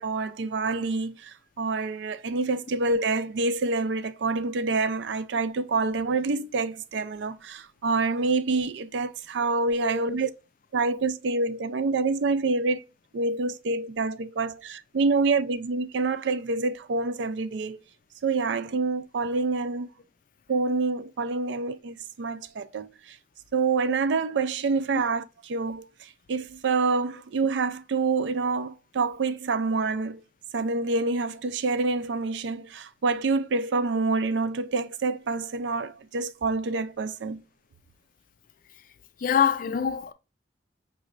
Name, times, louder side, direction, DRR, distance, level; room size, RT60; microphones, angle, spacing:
voice 1, 0.0-10.3 10.7-12.8 13.1-17.8 18.2-19.9 20.5-23.2 23.5-30.2 30.5-37.4, right 3 dB, 75° right, 0.4 m, -27 dB
voice 2, 39.2-40.1, left 7 dB, 50° left, 0.4 m, -24 dB
5.0 x 3.1 x 2.4 m
head